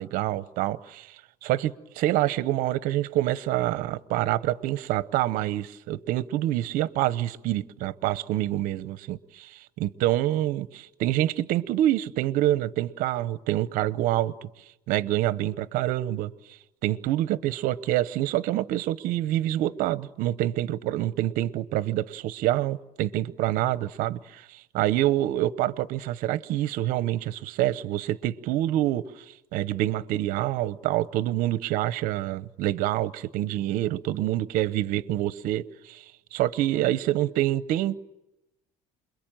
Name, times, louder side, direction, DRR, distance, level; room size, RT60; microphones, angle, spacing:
voice 1, 0.0-14.5 14.9-16.3 16.8-29.2 29.5-36.0 36.3-38.0, right 14 dB, 60° right, 0.9 m, -26 dB
28.0 x 22.0 x 9.0 m
cardioid pair, 165°, 15 cm